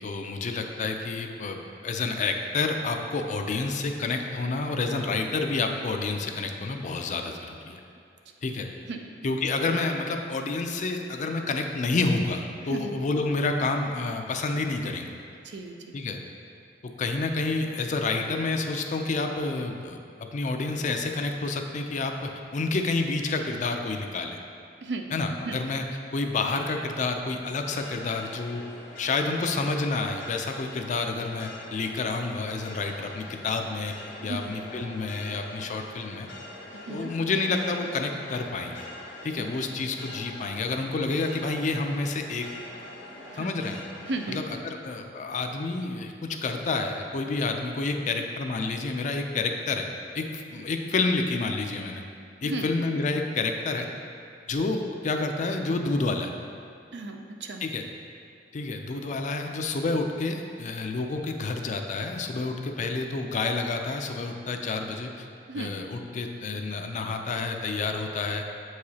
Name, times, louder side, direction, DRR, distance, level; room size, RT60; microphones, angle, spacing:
voice 1, 0.0-7.8 8.4-8.7 9.2-15.1 15.9-16.2 16.8-20.0 20.3-24.4 25.1-25.8 26.1-28.6 29.0-33.9 34.2-36.3 36.9-38.9 39.2-42.4 43.4-43.9 44.3-52.0 52.4-53.9 54.5-56.3 57.6-57.9 58.5-65.3 65.5-68.4, left 3 dB, 45° left, 4 dB, 0.4 m, -29 dB
voice 2, 15.4-16.0 24.8-25.1 25.5-25.6 34.2-34.5 36.9-37.1 39.4-39.5 43.3-43.6 44.1-44.4 52.4-52.7 56.9-57.6 65.5-65.7, right 2 dB, 70° right, 4 dB, 0.5 m, -34 dB
sound 1, 27.7-44.3, left 1 dB, 85° left, 0.9 m, -44 dB
7.2 x 4.8 x 2.8 m, 2.5 s
head